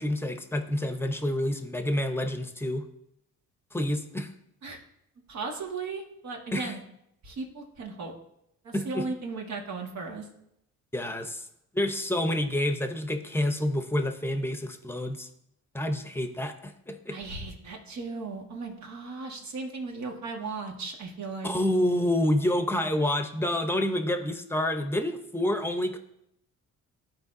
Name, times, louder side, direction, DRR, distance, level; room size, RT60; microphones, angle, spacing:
voice 1, 0.0-2.8 3.7-4.3 6.5-6.7 8.7-9.0 10.9-11.5 11.7-15.3 15.7-17.2 21.4-26.0, left 1 dB, 10° left, 6 dB, 0.8 m, -28 dB
voice 2, 5.3-6.8 7.2-8.1 8.6-10.3 17.1-21.5, right 3 dB, 65° right, 1 dB, 1.7 m, -36 dB
13.5 x 4.6 x 2.6 m, 0.79 s
cardioid pair, 90°, 30 cm